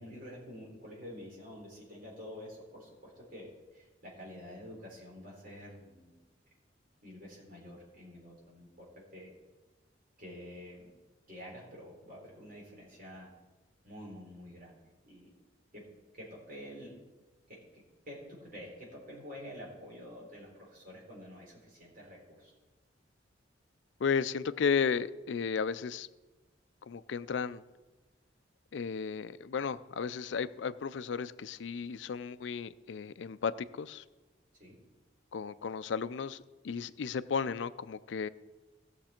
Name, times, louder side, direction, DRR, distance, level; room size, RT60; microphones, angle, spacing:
voice 1, 0.0-6.1 7.0-8.9 9.1-9.3 10.2-10.9 11.3-13.3 13.8-14.8 15.0-15.3 15.7-15.8 16.1-17.0 17.5-22.5 34.6-34.8, equal, 50° right, 4.0 m, -48 dB
voice 2, 24.0-26.1 26.8-27.6 28.7-34.0 35.3-38.3, left 6 dB, 75° left, 0.4 m, -34 dB
16.5 x 6.8 x 4.4 m
head